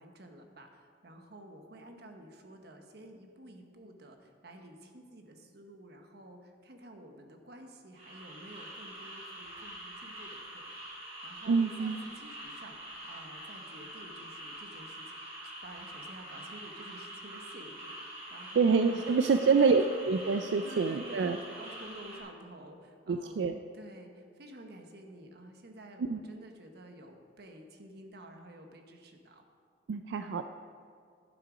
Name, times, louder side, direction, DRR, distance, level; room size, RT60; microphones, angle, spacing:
voice 1, 0.0-12.8 13.0-19.8 20.6-29.5, right 1 dB, 65° right, 4 dB, 1.1 m, -51 dB
sound 1, 8.0-22.2, right 1 dB, 35° right, 3.0 m, -45 dB
voice 2, 11.5-12.0 18.6-21.4 23.1-23.6 26.0-26.2 29.9-30.4, right 5 dB, 90° right, 8 dB, 0.4 m, -26 dB
11.5 x 7.5 x 5.0 m, 2.3 s
head